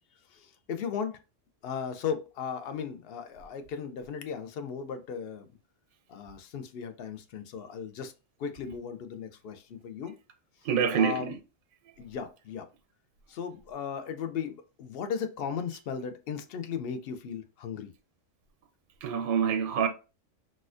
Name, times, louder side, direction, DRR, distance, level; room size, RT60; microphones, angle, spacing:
voice 1, 0.3-1.2 1.6-5.5 6.1-8.1 8.4-10.2 10.9-11.3 12.0-12.7 13.3-17.9, left 7 dB, 60° left, 0.7 m, -36 dB
voice 2, 10.6-11.4 19.0-19.9, right 7 dB, 60° right, 0.6 m, -26 dB
4.1 x 2.4 x 2.4 m
omnidirectional pair, 1.3 m